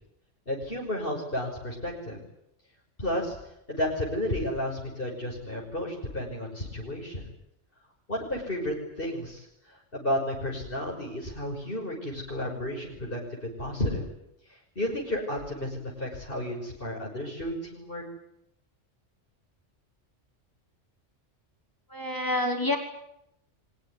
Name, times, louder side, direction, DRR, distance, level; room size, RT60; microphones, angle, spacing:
voice 1, 0.5-2.2 3.0-3.4 3.7-7.3 8.1-14.1 14.5-18.0, left 1 dB, 45° left, -1 dB, 6.1 m, -32 dB
voice 2, 21.9-22.8, left 1 dB, 15° left, 3 dB, 5.2 m, -27 dB
24.0 x 21.0 x 9.8 m, 0.79 s
omnidirectional pair, 1.3 m